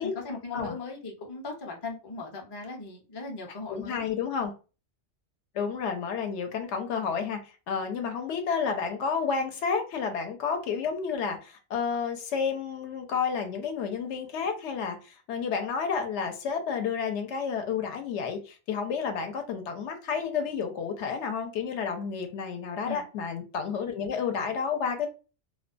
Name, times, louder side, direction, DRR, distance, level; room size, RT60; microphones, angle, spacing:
voice 1, 0.0-4.0 22.8-23.0, left 3 dB, 35° left, 0.4 m, -38 dB
voice 2, 3.7-4.5 5.5-25.1, left 6 dB, 80° left, 0.9 m, -31 dB
2.4 x 2.2 x 2.4 m
omnidirectional pair, 1.2 m